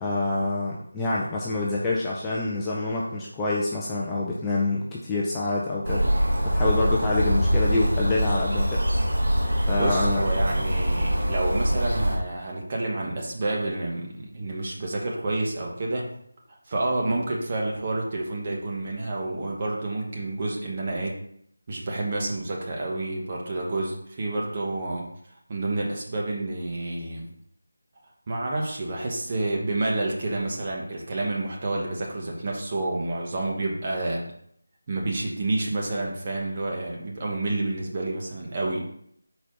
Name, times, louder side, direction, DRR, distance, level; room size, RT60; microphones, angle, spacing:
voice 1, 0.0-6.0 6.4-8.8 9.6-10.2, left 2 dB, 10° left, -6 dB, 0.5 m, -26 dB
sound 1, 5.8-12.2, equal, 65° right, 2.3 m, -24 dB
voice 2, 9.8-16.1 16.7-21.2 21.7-25.1 25.5-27.3 28.3-34.2 34.9-38.9, right 2 dB, 30° right, -1 dB, 1.2 m, -29 dB
4.6 x 4.2 x 5.3 m, 0.69 s
figure-of-eight pair, 170°, 0 cm